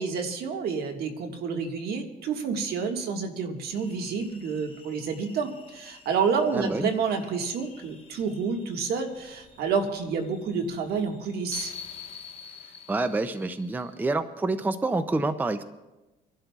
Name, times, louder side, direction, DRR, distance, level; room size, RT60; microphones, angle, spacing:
voice 1, 0.0-11.7, right 5 dB, 70° right, 4 dB, 1.7 m, -29 dB
sound 1, 3.7-14.1, left 6 dB, 35° left, 1.4 m, -47 dB
voice 2, 6.5-6.9 12.9-15.6, right 2 dB, 10° right, 11 dB, 0.5 m, -27 dB
30.0 x 11.5 x 2.4 m, 1.1 s
cardioid pair, 110°, 17 cm